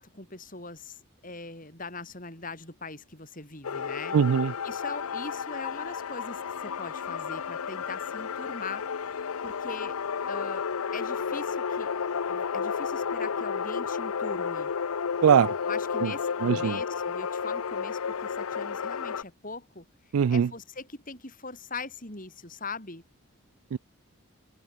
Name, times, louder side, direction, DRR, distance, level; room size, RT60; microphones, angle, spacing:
voice 1, 0.0-4.2 4.6-8.8 9.4-10.0 10.3-10.6 10.9-14.7 15.7-19.8 20.3-23.0, left 3 dB, 40° left, 6.6 m, -41 dB
sound 1, 3.6-19.2, left 6 dB, 90° left, 0.6 m, -32 dB
voice 2, 4.1-4.5 15.2-15.5 16.0-16.1 16.4-16.8 20.1-20.5 23.7-23.8, right 7 dB, 80° right, 0.4 m, -21 dB
head